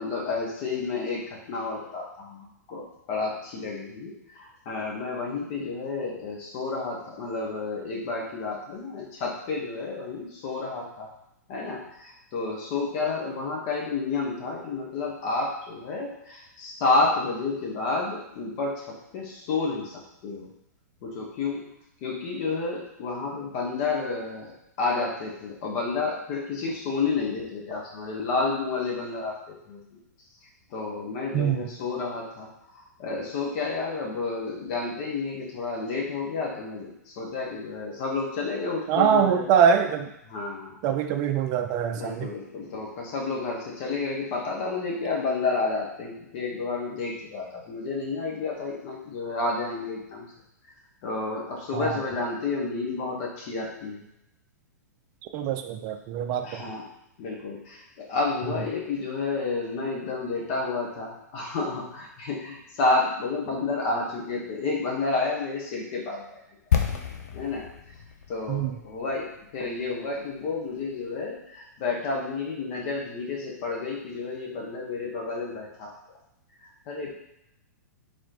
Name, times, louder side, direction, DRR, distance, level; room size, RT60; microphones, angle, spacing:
voice 1, 0.0-11.1 11.5-20.5 21.0-21.6 22.0-29.8 30.7-39.4 40.3-40.8 41.9-50.3 51.0-54.0 56.4-56.8 57.2-66.4 67.3-67.6 68.3-75.9 76.9-77.1, left 3 dB, 45° left, -2 dB, 1.3 m, -30 dB
voice 2, 31.3-31.7 38.9-40.1 40.8-42.3 51.7-52.0 55.3-56.7 58.5-58.6 68.5-68.8, right 8 dB, 40° right, 6 dB, 0.5 m, -24 dB
sound 1, 66.7-70.6 70.9-71.0, left 8 dB, 65° left, 0.7 m, -31 dB
4.0 x 3.3 x 3.9 m, 0.84 s
figure-of-eight pair, 110°, 9 cm